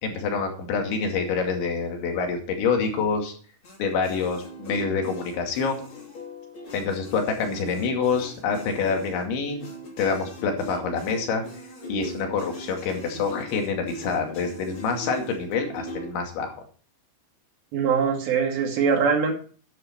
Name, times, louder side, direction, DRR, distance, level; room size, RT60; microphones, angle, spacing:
voice 1, 0.0-3.3 3.8-5.8 6.7-9.6 10.0-11.4 11.9-16.5, left 5 dB, 80° left, 3 dB, 4.7 m, -26 dB
sound 1, 3.6-16.1, left 1 dB, 30° left, 3.0 m, -40 dB
voice 2, 17.7-19.3, right 6 dB, 70° right, 2 dB, 4.5 m, -22 dB
11.0 x 10.5 x 4.5 m, 0.41 s
omnidirectional pair, 5.2 m